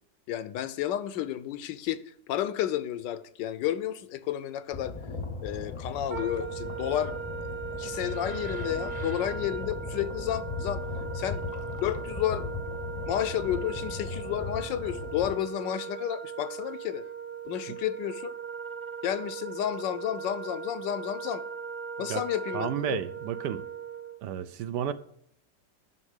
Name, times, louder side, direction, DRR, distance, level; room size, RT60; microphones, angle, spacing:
voice 1, 0.3-5.0 5.4-7.2 7.7-10.9 11.1-12.5 13.1-17.1 17.4-18.4 19.0-21.4 22.0-23.0, left 11 dB, 75° left, 1.3 m, -31 dB
sound 1, 4.7-15.3, left 3 dB, 30° left, 0.6 m, -38 dB
Wind instrument woodwind instrument, 6.1-24.2, right 6 dB, 35° right, 1.1 m, -39 dB
voice 2, 22.5-23.6 24.2-24.9, right 9 dB, 70° right, 1.1 m, -32 dB
9.8 x 6.2 x 6.5 m
omnidirectional pair, 2.0 m